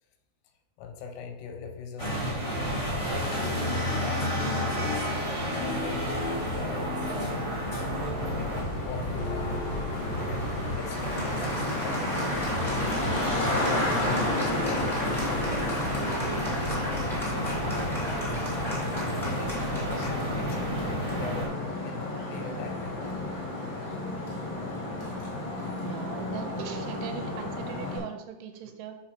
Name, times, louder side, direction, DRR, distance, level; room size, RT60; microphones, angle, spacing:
voice 1, 0.8-2.2 2.6-3.5 3.9-6.3 6.6-7.5 8.0-9.7 10.3-12.1 13.3-15.8 16.4-18.4 19.2-24.3, left 6 dB, 85° left, 5 dB, 2.7 m, -42 dB
sound 1, 2.0-21.5, equal, 25° left, 1.2 m, -31 dB
Traffic noise roadway noise, 8.0-28.0, left 2 dB, 55° left, 0.9 m, -33 dB
Applause, 9.0-23.4, left 1 dB, ahead, 0.7 m, -37 dB
voice 2, 25.8-29.0, right 8 dB, 80° right, 6 dB, 2.5 m, -40 dB
5.0 x 4.9 x 5.8 m, 0.94 s
omnidirectional pair, 4.9 m